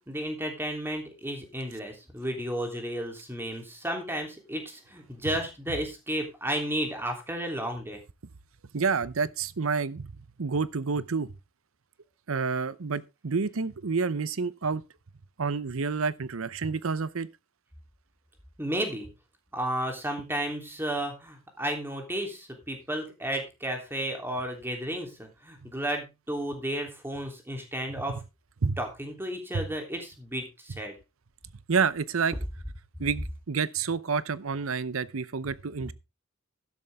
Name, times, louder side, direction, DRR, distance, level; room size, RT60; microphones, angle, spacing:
voice 1, 0.1-8.0 18.6-19.1 19.5-28.2 28.8-30.9, right 1 dB, 10° right, 3.2 m, -33 dB
voice 2, 8.7-10.1 10.4-11.3 12.3-14.8 15.4-17.3 27.9-28.0 28.6-28.8 29.5-29.6 31.7-32.3 33.0-35.9, right 5 dB, 80° right, 0.7 m, -29 dB
12.5 x 10.5 x 3.5 m
head